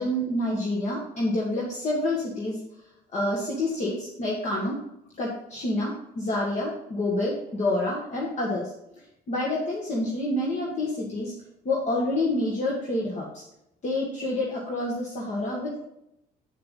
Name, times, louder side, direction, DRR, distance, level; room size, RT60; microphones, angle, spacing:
voice 1, 0.0-2.6 3.1-4.8 5.2-8.7 9.3-11.3 11.7-13.4 13.8-15.8, left 1 dB, 45° left, -3 dB, 1.9 m, -28 dB
8.0 x 7.4 x 4.0 m, 0.83 s
cardioid pair, 110°, 17 cm